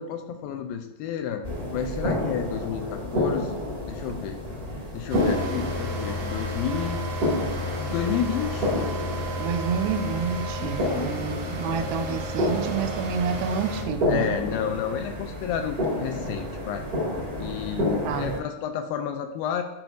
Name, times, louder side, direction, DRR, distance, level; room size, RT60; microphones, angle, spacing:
voice 1, 0.0-1.4 1.7-4.4 4.9-7.0 7.7-8.7 10.6-11.1 11.7-12.2 14.1-16.9 17.4-19.6, left 8 dB, 85° left, 6 dB, 2.1 m, -31 dB
sound 1, 1.4-18.4, left 1 dB, 40° right, 1.3 m, -30 dB
sound 2, 5.1-13.8, equal, 60° right, 2.0 m, -33 dB
voice 2, 9.4-14.4 18.0-18.4, right 6 dB, 80° right, 6 dB, 2.2 m, -29 dB
11.5 x 5.1 x 2.5 m, 0.88 s
omnidirectional pair, 4.6 m